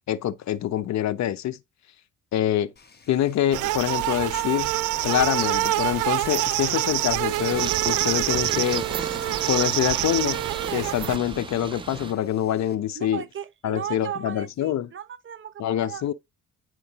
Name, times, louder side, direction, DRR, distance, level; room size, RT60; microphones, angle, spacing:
voice 1, 0.1-1.6 2.3-2.7 3.1-4.7 5.0-8.9 9.5-10.5 10.7-13.2 13.6-14.9 15.6-16.1, left 11 dB, 65° left, 0.7 m, -25 dB
Water / Splash splatter, 2.8-12.8, left 4 dB, 35° left, 1.2 m, -46 dB
sound 1, 3.5-11.2, right 17 dB, 90° right, 0.5 m, -26 dB
Purr, 7.3-12.1, right 5 dB, 20° right, 0.3 m, -36 dB
voice 2, 12.9-16.1, right 9 dB, 40° right, 0.8 m, -36 dB
9.5 x 4.6 x 2.8 m
cardioid pair, 90°, 30 cm